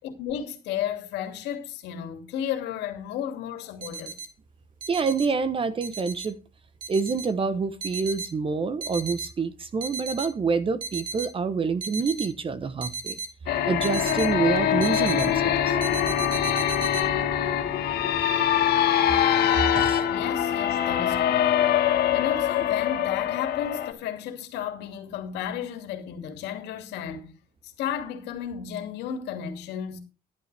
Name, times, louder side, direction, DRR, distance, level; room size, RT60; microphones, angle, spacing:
voice 1, 0.0-4.1 20.1-21.4 22.1-27.3 27.6-30.0, left 9 dB, 85° left, 2.6 m, -33 dB
sound 1, 3.8-4.3 4.8-5.3 5.8-6.3 6.8-7.3 7.8-8.3 8.8-9.3 9.8-10.3 10.8-11.3 11.8-12.3 12.8-13.3 13.8-14.3 14.8-15.3 15.8-17.0, right 4 dB, 50° right, 2.4 m, -34 dB
voice 2, 4.9-6.4 6.9-13.2 13.7-15.8 19.7-20.0, right 5 dB, 30° right, 1.0 m, -27 dB
sound 2, 13.5-23.9, left 10 dB, 70° left, 2.2 m, -23 dB
13.5 x 11.0 x 3.4 m
cardioid pair, 110°, 17 cm